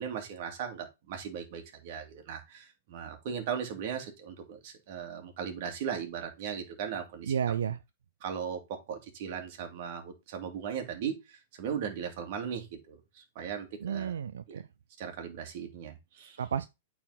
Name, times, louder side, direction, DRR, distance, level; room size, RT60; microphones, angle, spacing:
voice 1, 0.0-7.3 8.2-14.1 15.0-16.4, right 7 dB, 50° right, 2.4 m, -38 dB
voice 2, 7.3-7.8 13.8-14.7 16.4-16.7, right 8 dB, 90° right, 0.5 m, -31 dB
8.9 x 4.3 x 4.1 m
hypercardioid pair, 145°, 0 cm